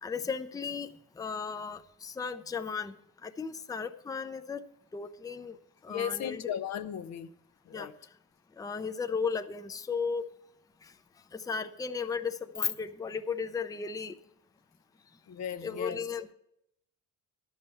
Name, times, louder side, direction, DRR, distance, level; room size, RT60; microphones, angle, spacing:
voice 1, 0.0-2.9 3.2-4.6 4.9-5.6 5.8-6.4 7.7-7.9 8.6-10.3 10.8-10.9 11.3-14.1 15.6-16.3, left 5 dB, 10° left, 0.5 m, -35 dB
voice 2, 5.9-7.3 7.7-7.9 15.3-16.0, left 9 dB, 65° left, 0.6 m, -36 dB
11.0 x 7.3 x 5.5 m
cardioid pair, 90°, 30 cm